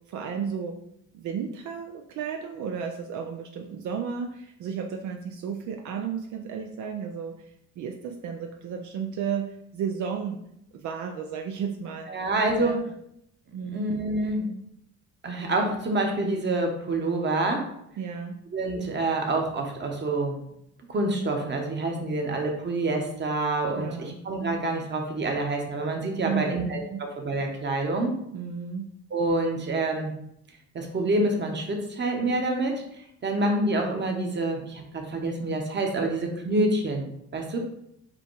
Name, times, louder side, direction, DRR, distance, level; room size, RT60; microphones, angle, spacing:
voice 1, 0.1-0.8 1.1-7.4 7.8-10.4 10.8-12.2 12.6-12.8 13.5-13.9 18.0-18.4 23.7-24.2 26.2-27.0 28.3-28.9, right 7 dB, 75° right, 3 dB, 0.5 m, -33 dB
voice 2, 12.1-12.8 13.6-14.4 15.2-17.7 18.5-20.4 20.9-28.1 29.1-30.1 30.7-32.8 33.2-37.1 37.3-37.6, right 2 dB, 35° right, 2 dB, 1.1 m, -27 dB
5.0 x 2.3 x 4.6 m, 0.76 s
cardioid pair, 90°, 30 cm